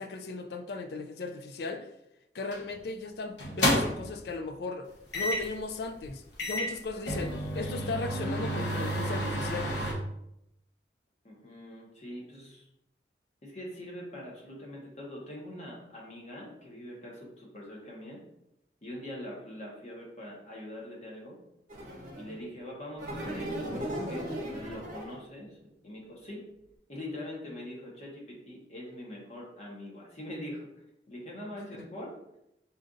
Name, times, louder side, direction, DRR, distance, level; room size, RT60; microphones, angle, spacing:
voice 1, 0.0-1.9 2.3-4.9 5.1-9.7, left 3 dB, 65° left, 0.4 m, -37 dB
sound 1, 2.5-2.7 3.4-4.1 5.1-5.6 6.0-6.1 6.4-9.9, equal, 85° left, 1.0 m, -30 dB
voice 2, 11.2-12.6 13.4-18.2 18.8-21.4 22.2-26.4 26.9-30.7 31.1-32.2, left 1 dB, 40° left, 1.1 m, -43 dB
sound 2, 21.7-22.4 23.0-25.2, equal, 50° right, 1.0 m, -37 dB
4.3 x 2.5 x 3.7 m
head